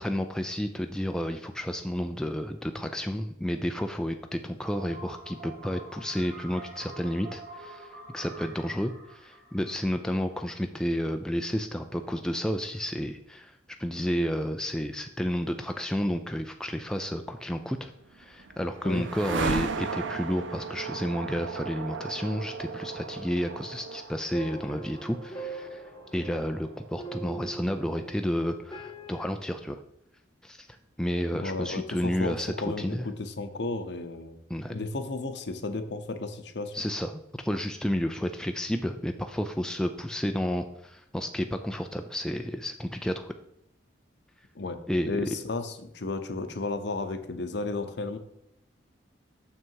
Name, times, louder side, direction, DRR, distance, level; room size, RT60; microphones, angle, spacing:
voice 1, 0.0-25.8 26.1-29.8 30.4-30.7 31.0-33.1 34.5-34.7 36.7-43.3 44.9-45.4, equal, 5° left, 5 dB, 0.3 m, -31 dB
sound 1, 4.7-10.5, right 2 dB, 50° right, 2.0 m, -46 dB
sound 2, 17.8-27.9, right 4 dB, 70° right, 0.6 m, -37 dB
sound 3, 24.3-29.3, right 3 dB, 20° left, 0.7 m, -42 dB
voice 2, 31.3-34.4 34.7-36.7 44.6-48.2, left 3 dB, 60° left, 9 dB, 0.7 m, -33 dB
6.7 x 6.1 x 4.6 m, 0.78 s
head